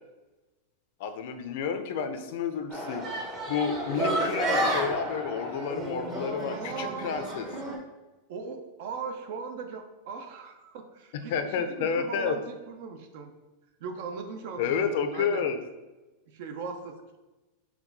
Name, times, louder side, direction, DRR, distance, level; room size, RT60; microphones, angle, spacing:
voice 1, 1.0-3.1 3.5-7.5 11.3-12.4 14.6-15.6, left 6 dB, 65° left, 8 dB, 0.5 m, -30 dB
sound 1, 2.7-7.8, right 1 dB, 30° right, 0.8 m, -31 dB
voice 2, 6.5-7.4 8.3-13.3 13.8-15.5 16.3-17.2, right 5 dB, 60° right, 6 dB, 0.6 m, -39 dB
4.4 x 2.3 x 4.0 m, 1.1 s
supercardioid pair, 145°, 0 cm